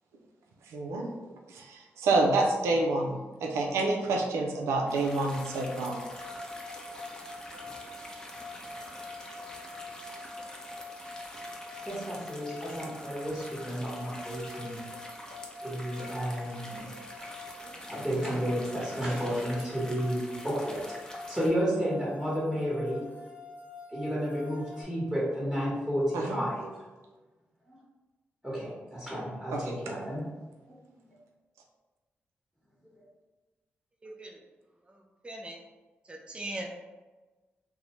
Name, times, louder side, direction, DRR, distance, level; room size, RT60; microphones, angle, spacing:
voice 1, 0.7-1.1 1.5-6.0 26.1-26.4 29.5-29.7, right 2 dB, 90° right, 1 dB, 0.4 m, -28 dB
sound 1, 4.9-21.5, left 1 dB, 15° left, 0.6 m, -46 dB
sound 2, 5.0-24.8, left 2 dB, 40° left, 1.0 m, -45 dB
voice 2, 11.9-14.8 15.6-16.9 17.6-23.1 23.9-26.8 27.7-27.8 28.4-30.3 30.7-30.8, equal, 5° right, -8 dB, 1.1 m, -32 dB
voice 3, 34.0-34.4 34.9-35.6 36.0-36.7, right 1 dB, 25° right, 0 dB, 0.5 m, -40 dB
2.6 x 2.1 x 3.0 m, 1.2 s
supercardioid pair, 45°, 5 cm